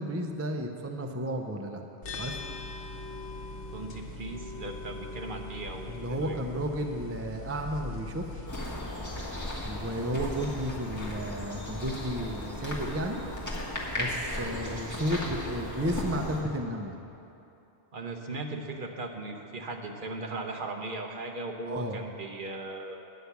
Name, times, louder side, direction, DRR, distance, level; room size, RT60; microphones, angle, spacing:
voice 1, 0.0-1.8 2.2-2.4 5.9-8.4 9.6-13.2 14.0-17.0 21.7-22.0, equal, 25° right, 4 dB, 0.3 m, -33 dB
sound 1, 2.0-8.5, left 2 dB, 80° left, 1.2 m, -40 dB
voice 2, 3.7-5.9 6.2-6.4 17.9-23.2, right 2 dB, 50° right, 3 dB, 0.9 m, -38 dB
sound 2, 8.5-16.4, left 1 dB, 15° left, 1.5 m, -36 dB
9.8 x 5.7 x 8.1 m, 2.8 s
omnidirectional pair, 1.2 m